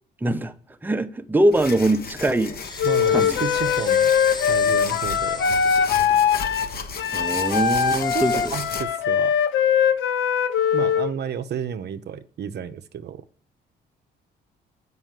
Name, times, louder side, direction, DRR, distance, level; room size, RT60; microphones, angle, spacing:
voice 1, 0.2-0.5 0.8-2.5 3.1-3.4 7.1-8.5, right 1 dB, 10° right, 0.8 m, -22 dB
sound 1, 1.5-8.8, left 5 dB, 50° left, 1.1 m, -35 dB
sound 2, 2.6-8.7, left 3 dB, 20° left, 0.9 m, -38 dB
Wind instrument woodwind instrument, 2.8-11.1, left 7 dB, 75° left, 0.8 m, -21 dB
voice 2, 2.8-4.1 4.5-5.4 8.1-9.4 10.7-13.2, right 8 dB, 55° right, 0.7 m, -32 dB
7.8 x 5.5 x 7.5 m
cardioid pair, 90°, 20 cm